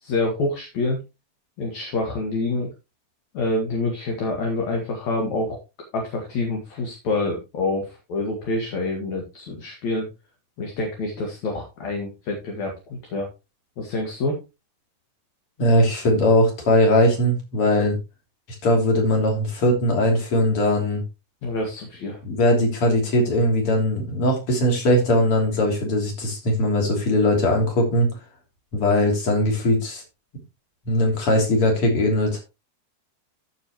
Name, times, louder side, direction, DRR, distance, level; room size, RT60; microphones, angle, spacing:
voice 1, 0.0-1.0 1.6-2.7 3.3-5.6 5.9-10.1 10.6-12.7 13.1-13.3 13.8-14.4 21.4-22.2, left 2 dB, 50° left, 1 dB, 2.6 m, -27 dB
voice 2, 15.6-17.9 18.6-21.0 22.3-28.1 28.7-30.0 30.9-32.4, left 1 dB, 35° left, 2 dB, 3.6 m, -20 dB
14.0 x 6.6 x 3.1 m, 0.26 s
omnidirectional pair, 5.1 m